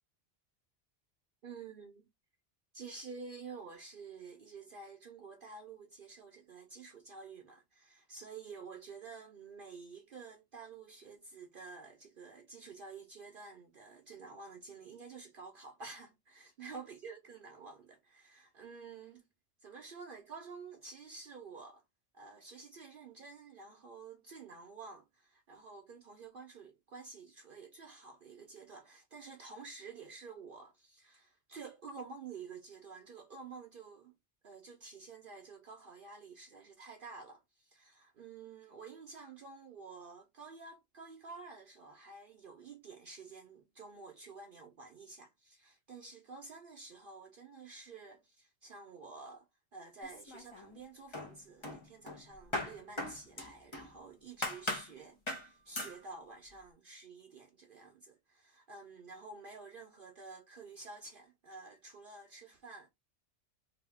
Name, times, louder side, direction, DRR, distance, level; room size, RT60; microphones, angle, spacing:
voice 1, 1.4-2.1 2.7-19.2 19.6-21.8 22.1-34.1 34.4-62.9, right 4 dB, 55° right, 0.8 m, -50 dB
sound 1, 50.0-50.8 51.1-53.9 54.4-54.9 55.3-55.5 55.8-56.0, left 1 dB, 25° left, 0.9 m, -39 dB
2.8 x 2.7 x 3.4 m
omnidirectional pair, 1.2 m